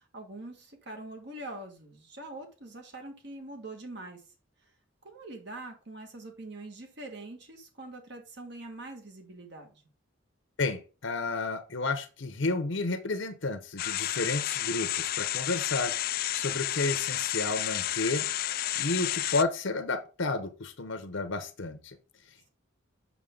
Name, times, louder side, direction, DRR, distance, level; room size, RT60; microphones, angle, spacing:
voice 1, 0.0-4.2 4.6-4.7 5.0-9.8, right 2 dB, 55° right, 1.8 m, -44 dB
voice 2, 10.6-18.3 18.8-22.0, left 3 dB, 65° left, 0.9 m, -31 dB
sound 1, 13.8-19.4, left 13 dB, 45° left, 0.3 m, -31 dB
7.2 x 5.8 x 3.8 m
head